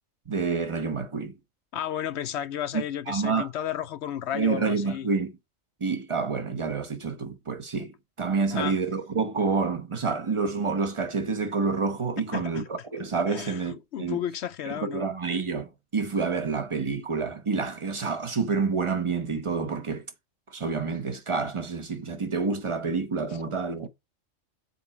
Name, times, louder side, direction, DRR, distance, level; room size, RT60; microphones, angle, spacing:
voice 1, 0.3-1.3 2.7-3.5 4.3-5.3 5.8-14.2 14.6-20.0 20.5-23.9, right 4 dB, 25° right, 0.9 m, -28 dB
voice 2, 1.7-5.1 8.5-8.8 12.3-12.6 13.3-13.6 13.9-15.1, left 10 dB, 65° left, 0.8 m, -33 dB
6.9 x 4.4 x 4.1 m
omnidirectional pair, 1.3 m